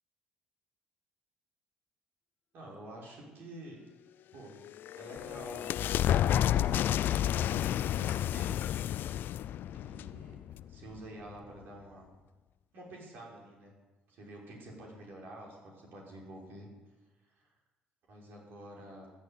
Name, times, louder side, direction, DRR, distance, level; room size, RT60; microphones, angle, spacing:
voice 1, 2.5-3.8 4.3-4.6 5.0-5.7 6.2-8.6 9.7-10.4 10.7-12.1 12.7-13.7 14.1-16.7 17.4-17.5 18.1-19.1, right 1 dB, 65° right, -3 dB, 5.9 m, -49 dB
sound 1, 4.6-11.0, left 11 dB, 65° left, 0.4 m, -31 dB
15.5 x 8.8 x 8.3 m, 1.2 s
supercardioid pair, 70°, 4 cm